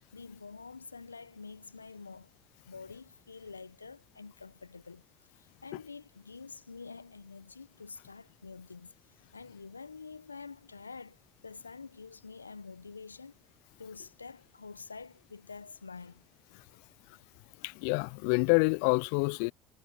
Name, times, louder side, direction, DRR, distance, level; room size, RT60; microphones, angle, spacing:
voice 1, 0.1-2.3 2.7-5.0 5.4-8.9 9.3-13.4 13.8-16.2, left 4 dB, 90° left, 1.0 m, -47 dB
voice 2, 17.6-19.5, left 40 dB or more, 65° left, 0.3 m, -27 dB
figure-of-eight pair, 60°, 0 cm